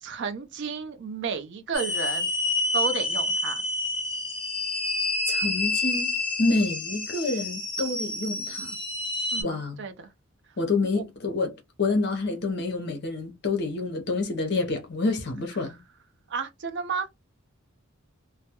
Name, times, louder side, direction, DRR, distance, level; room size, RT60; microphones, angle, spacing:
voice 1, 0.0-2.3 2.7-3.6 9.3-10.1 16.3-17.1, right 5 dB, 50° right, 0.4 m, -32 dB
sound 1, 1.7-9.4, left 2 dB, 25° left, 1.0 m, -28 dB
voice 2, 5.3-8.8 9.4-9.8 10.6-15.8, left 3 dB, 50° left, 0.6 m, -28 dB
2.2 x 2.0 x 2.8 m
head